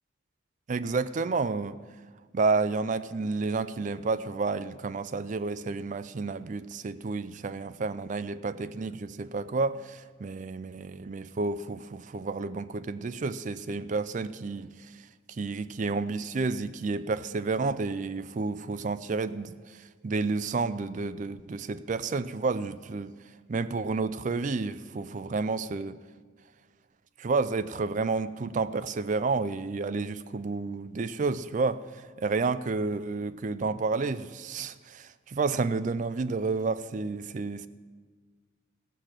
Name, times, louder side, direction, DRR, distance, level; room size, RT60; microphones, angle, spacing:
voice 1, 0.7-1.8 2.3-14.7 15.4-19.8 20.0-23.1 23.5-26.0 27.2-31.8 32.2-37.7, right 4 dB, 40° right, 0.4 m, -30 dB
15.5 x 6.5 x 7.4 m
head